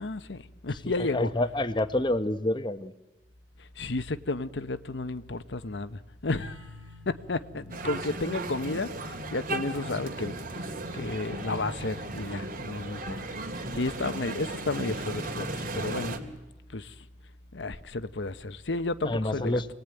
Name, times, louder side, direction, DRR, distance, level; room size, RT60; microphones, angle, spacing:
voice 1, 0.0-1.3 3.8-6.6 7.1-13.2 13.5-16.2 16.7-16.9 17.5-19.6, left 3 dB, 85° left, 1.0 m, -32 dB
voice 2, 1.1-2.9 19.0-19.7, left 1 dB, 25° left, 1.0 m, -27 dB
sound 1, 6.3-11.8, left 2 dB, 80° right, 2.3 m, -53 dB
sound 2, 7.7-16.2, right 2 dB, 50° right, 2.6 m, -36 dB
27.5 x 19.5 x 9.1 m
head